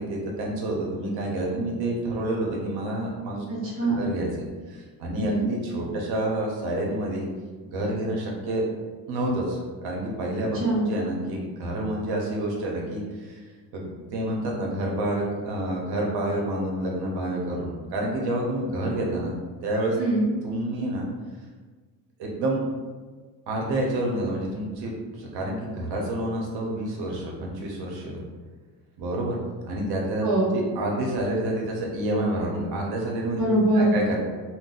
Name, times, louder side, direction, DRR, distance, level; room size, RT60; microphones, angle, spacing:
voice 1, 0.0-3.4 4.0-4.3 4.7-7.3 7.7-8.6 9.1-10.6 10.9-13.4 13.7-13.9 14.1-19.3 19.6-20.0 20.4-21.1 22.2-22.6 23.5-28.2 29.0-29.4 29.6-30.3 30.5-33.4 33.7-34.2, right 1 dB, 90° right, -1 dB, 0.8 m, -28 dB
voice 2, 3.5-4.0 5.2-5.5 10.5-10.9 20.0-20.3 30.2-30.5 33.3-33.9, right 2 dB, 35° right, -7 dB, 0.9 m, -23 dB
2.6 x 2.2 x 3.9 m, 1.4 s
cardioid pair, 180°, 37 cm